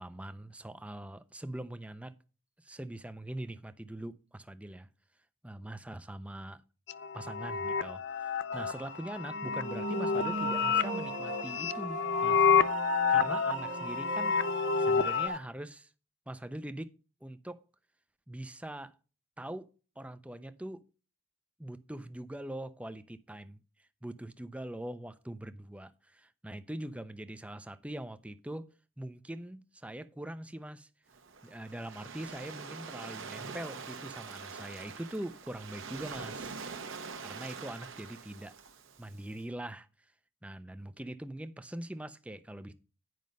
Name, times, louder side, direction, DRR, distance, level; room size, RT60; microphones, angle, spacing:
voice 1, 0.0-2.1 2.6-4.9 5.4-6.6 7.1-8.3 8.5-12.5 13.1-14.4 14.8-15.9 16.3-16.9 17.2-17.6 18.3-18.9 19.4-20.8 21.6-28.7 29.0-30.9 31.4-36.5 37.2-38.5 39.0-39.9 40.4-42.7, right 1 dB, 5° right, 0.4 m, -42 dB
sound 1, 6.9-15.3, left 6 dB, 55° left, 0.4 m, -29 dB
sound 2, 8.5-15.4, right 3 dB, 35° right, 0.8 m, -38 dB
Waves surf, 31.1-39.3, right 5 dB, 65° right, 1.0 m, -44 dB
9.4 x 5.2 x 5.2 m
head